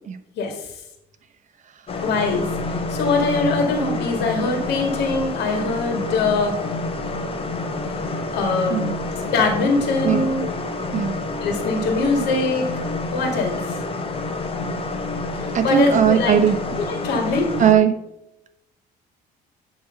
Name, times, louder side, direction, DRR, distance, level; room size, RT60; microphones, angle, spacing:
sound 1, 1.9-17.8, left 3 dB, 35° left, 0.9 m, -28 dB
voice 1, 2.0-6.5 8.3-8.8 9.1-10.6 11.4-12.7 13.1-13.7 15.6-16.4 16.8-17.5, left 3 dB, 80° left, 3 dB, 2.0 m, -22 dB
voice 2, 15.5-16.6 17.6-17.9, right 8 dB, 45° right, 9 dB, 0.9 m, -18 dB
10.0 x 3.4 x 5.8 m, 0.84 s
cardioid pair, 110°, 17 cm